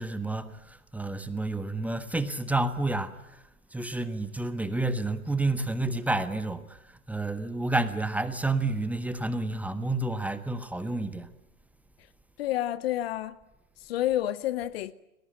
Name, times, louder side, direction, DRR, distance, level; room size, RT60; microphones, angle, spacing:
voice 1, 0.0-3.4 3.7-6.8 7.1-11.3, right 2 dB, 5° right, 1.4 m, -30 dB
voice 2, 12.4-13.3 13.8-14.9, left 13 dB, 45° left, 1.2 m, -29 dB
29.5 x 20.0 x 9.2 m
figure-of-eight pair, 100°, 41 cm